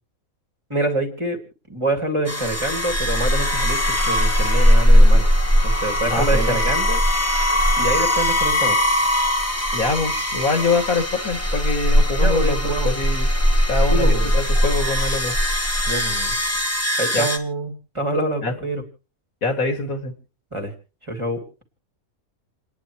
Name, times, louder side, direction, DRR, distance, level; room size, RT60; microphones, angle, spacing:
voice 1, 0.7-1.4 1.7-5.3 5.6-7.0 7.8-8.8 12.2-12.9 13.9-14.3 15.8-16.3 17.0-18.8 20.5-20.7 21.0-21.4, right 1 dB, 20° right, 2 dB, 2.8 m, -26 dB
sound 1, 2.3-17.4, equal, 10° left, 1.6 m, -19 dB
voice 2, 6.1-6.6 9.7-13.3 13.7-15.3 17.1-17.3 18.4-18.6 19.4-20.1, left 3 dB, 70° left, 5 dB, 2.8 m, -24 dB
29.5 x 10.5 x 3.1 m, 0.37 s
omnidirectional pair, 1.5 m